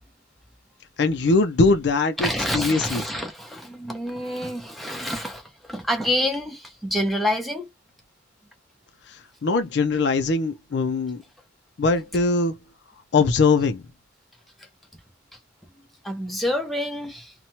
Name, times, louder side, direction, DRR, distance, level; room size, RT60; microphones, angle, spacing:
voice 1, 1.0-3.0 9.1-11.2 11.8-12.6 13.1-13.8, left 3 dB, 60° left, 0.4 m, -21 dB
voice 2, 2.2-7.7 16.0-17.3, left 1 dB, ahead, 0.7 m, -27 dB
2.8 x 2.2 x 2.8 m
head